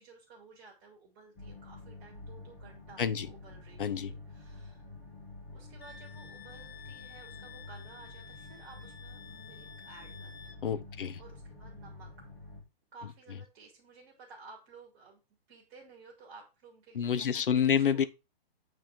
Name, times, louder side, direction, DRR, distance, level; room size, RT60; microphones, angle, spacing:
voice 1, 0.0-4.9 5.5-10.6 11.2-12.1 12.9-15.2 15.5-18.1, right 4 dB, 15° right, 2.6 m, -55 dB
sound 1, 1.4-12.6, left 2 dB, 15° left, 2.3 m, -49 dB
voice 2, 3.8-4.1 10.6-11.2 16.9-18.1, left 8 dB, 60° left, 0.9 m, -28 dB
Wind instrument woodwind instrument, 5.8-10.6, left 7 dB, 85° left, 1.6 m, -52 dB
9.1 x 4.2 x 5.1 m
hypercardioid pair, 175°, 31 cm